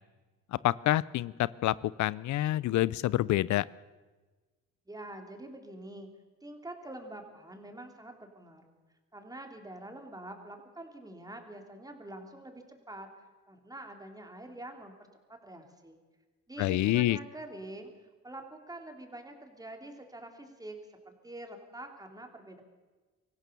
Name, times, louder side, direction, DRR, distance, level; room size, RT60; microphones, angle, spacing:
voice 1, 0.6-3.6 16.6-17.2, left 15 dB, 75° left, 21 dB, 0.5 m, -27 dB
voice 2, 4.9-6.1 6.4-8.8 9.1-13.1 13.5-16.0 16.5-17.9 18.2-20.8 21.1-22.6, right 1 dB, 10° right, 4 dB, 3.5 m, -46 dB
25.0 x 15.5 x 6.9 m, 1.3 s
cardioid pair, 90°, 30 cm